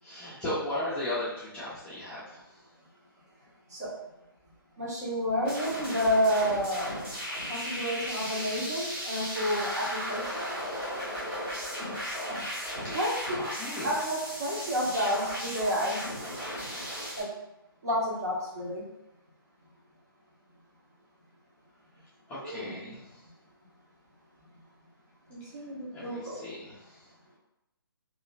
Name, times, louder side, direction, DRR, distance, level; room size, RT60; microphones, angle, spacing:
voice 1, 0.0-2.6 12.8-13.0 13.5-13.9 17.1-17.2 22.3-23.3 25.9-27.1, left 1 dB, 10° left, -11 dB, 0.5 m, -36 dB
voice 2, 4.8-6.9 7.5-10.4 12.9-13.4 13.8-16.0 17.1-17.3 17.8-18.8 22.4-23.0 25.3-26.5, equal, 45° right, -6 dB, 1.0 m, -30 dB
sound 1, 5.4-17.2, equal, 15° right, 0.8 m, -36 dB
2.8 x 2.5 x 2.2 m, 0.90 s
figure-of-eight pair, 140°, 13 cm